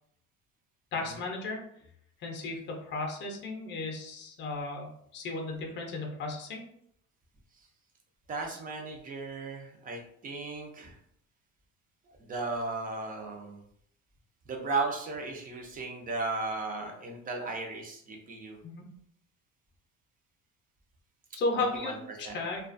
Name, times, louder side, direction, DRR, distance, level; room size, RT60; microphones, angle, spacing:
voice 1, 0.9-1.6 2.2-6.6 18.6-18.8 21.3-21.9 22.3-22.6, left 3 dB, 35° left, 1 dB, 0.6 m, -34 dB
voice 2, 8.3-11.0 12.2-13.6 14.5-18.6 21.6-22.4, right 3 dB, 25° right, 1 dB, 0.5 m, -36 dB
2.3 x 2.3 x 2.4 m, 0.68 s
cardioid pair, 145°, 33 cm